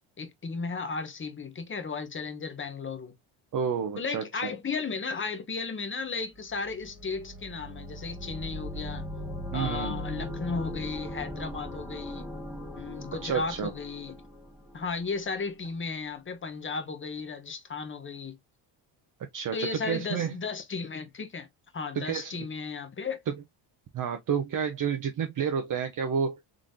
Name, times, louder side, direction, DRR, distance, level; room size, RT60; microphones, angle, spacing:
voice 1, 0.2-3.1 4.0-9.1 9.5-12.3 12.8-14.2 14.7-18.4 19.5-21.5 21.7-23.2, left 4 dB, 25° left, 0.9 m, -35 dB
voice 2, 3.5-4.5 9.5-10.0 13.2-13.7 19.3-20.3 22.0-22.3 23.9-26.4, right 7 dB, 40° right, 0.7 m, -30 dB
sound 1, 6.3-15.2, equal, 5° right, 1.3 m, -39 dB
3.7 x 3.3 x 2.6 m
cardioid pair, 110°, 49 cm